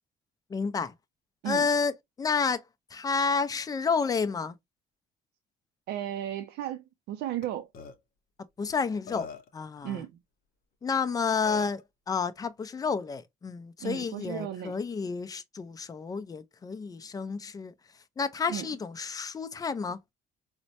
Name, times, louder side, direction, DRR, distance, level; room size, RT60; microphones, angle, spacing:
voice 1, 0.5-0.9 1.4-1.9 2.2-2.6 2.9-4.6 8.6-9.3 9.5-10.0 10.8-11.8 12.1-17.7 18.2-20.0, left 5 dB, 20° left, 0.4 m, -30 dB
voice 2, 5.9-7.7 9.8-10.1 13.8-14.7 18.5-18.7, right 12 dB, 80° right, 0.4 m, -34 dB
Burping eructation, 7.4-7.5 7.7-7.9 8.7-8.8 9.1-9.6 11.0-11.1 11.4-11.8, left 5 dB, 60° left, 0.7 m, -42 dB
4.1 x 2.1 x 2.7 m
cardioid pair, 110°, 17 cm